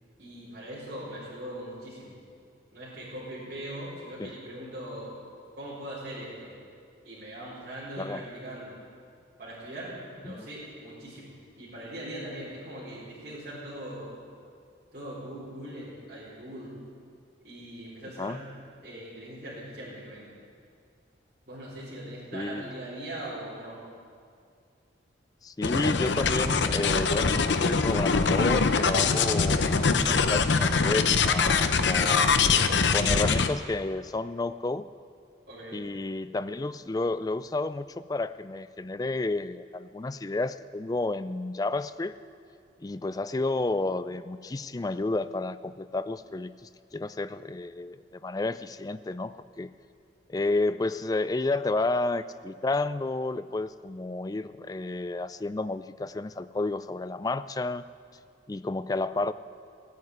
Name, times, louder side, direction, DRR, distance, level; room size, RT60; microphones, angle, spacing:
voice 1, 0.2-2.1 2.7-5.2 5.6-6.5 7.0-8.7 9.4-11.3 11.6-14.1 14.9-16.7 17.4-18.4 18.8-20.3 21.5-23.8 35.5-35.8, right 1 dB, 50° right, -10 dB, 4.4 m, -40 dB
voice 2, 22.3-22.6 25.4-32.5 32.9-34.9 35.7-42.2 42.8-49.7 50.3-57.8 58.5-59.3, left 2 dB, 20° left, 14 dB, 0.3 m, -31 dB
sound 1, 25.6-33.5, left 5 dB, 70° left, 0.7 m, -23 dB
15.5 x 9.3 x 9.5 m, 2.3 s
head